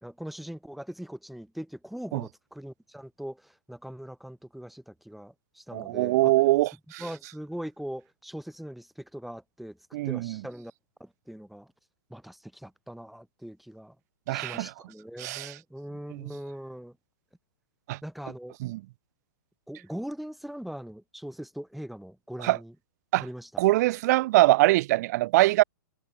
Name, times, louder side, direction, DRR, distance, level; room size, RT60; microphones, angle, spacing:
voice 1, 0.0-6.3 7.0-9.8 10.1-10.7 11.0-11.7 12.1-13.9 14.3-16.9 18.0-18.5 19.7-22.7 23.2-23.6, equal, ahead, 4.8 m, -41 dB
voice 2, 5.7-7.0 9.9-10.4 14.3-14.7 15.2-15.5 16.1-16.3 17.9-18.0 18.6-18.8 22.4-22.6 23.1-23.3 23.6-25.6, right 18 dB, 50° right, 1.5 m, -23 dB
hypercardioid pair, 145°, 12 cm